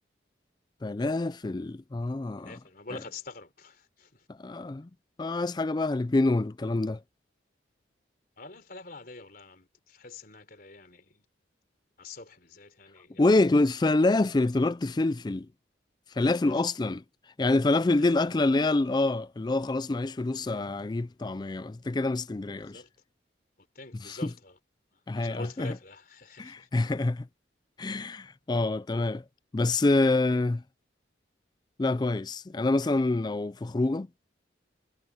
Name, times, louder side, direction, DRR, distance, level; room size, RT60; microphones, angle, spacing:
voice 1, 0.8-2.5 2.9-3.0 4.3-4.9 5.2-7.0 13.2-15.5 16.1-17.0 17.4-22.8 24.0-24.3 25.1-25.8 26.4-27.3 27.8-29.2 29.5-30.6 31.8-34.1, left 2 dB, 20° left, 0.4 m, -26 dB
voice 2, 2.4-4.3 8.4-11.2 12.0-13.2 16.2-16.5 17.9-18.3 22.5-22.9 23.8-24.6 24.9-26.7, left 3 dB, 50° left, 3.7 m, -46 dB
head